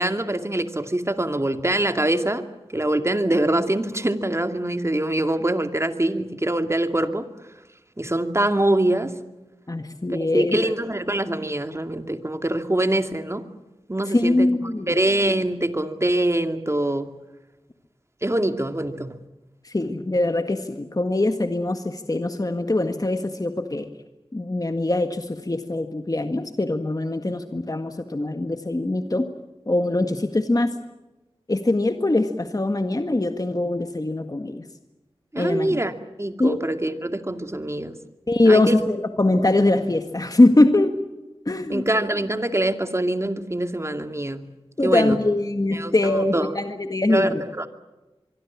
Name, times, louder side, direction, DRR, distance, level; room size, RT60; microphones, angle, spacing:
voice 1, 0.0-2.5 2.7-7.3 8.0-9.1 10.1-13.4 13.9-14.5 14.9-17.1 18.2-19.2 35.3-35.9 36.2-38.0 38.5-38.7 41.7-44.4 44.8-45.2 45.7-46.5 47.1-47.7, right 1 dB, 25° right, 7 dB, 2.3 m, -24 dB
voice 2, 9.7-10.7 14.0-14.9 19.6-23.9 24.3-29.3 29.7-30.7 31.5-34.6 35.4-35.8 36.4-36.6 38.3-41.0 41.4-41.8 44.8-47.4, left 2 dB, 35° left, 7 dB, 1.7 m, -22 dB
24.5 x 24.0 x 7.3 m, 1.1 s
wide cardioid pair, 50°, 10 cm